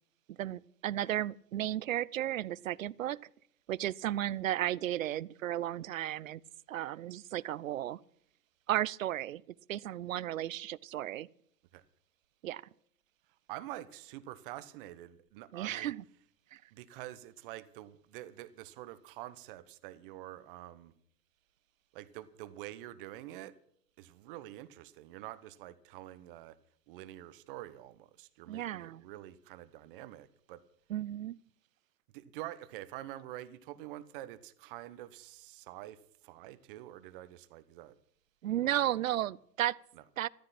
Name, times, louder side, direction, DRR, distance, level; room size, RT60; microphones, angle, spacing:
voice 1, 0.3-3.2 3.7-6.4 6.7-8.0 8.7-9.4 9.7-11.3 12.4-12.6 15.5-16.0 16.5-16.6 28.5-29.0 30.9-31.4 38.4-39.8 40.2-40.3, right 13 dB, 55° right, 0.6 m, -34 dB
voice 2, 13.5-15.9 16.7-20.9 21.9-23.5 24.0-26.6 26.9-30.6 32.1-38.0 38.6-38.8 39.9-40.0, right 14 dB, 30° right, 1.1 m, -47 dB
14.0 x 13.5 x 5.9 m
hypercardioid pair, 125°, 49 cm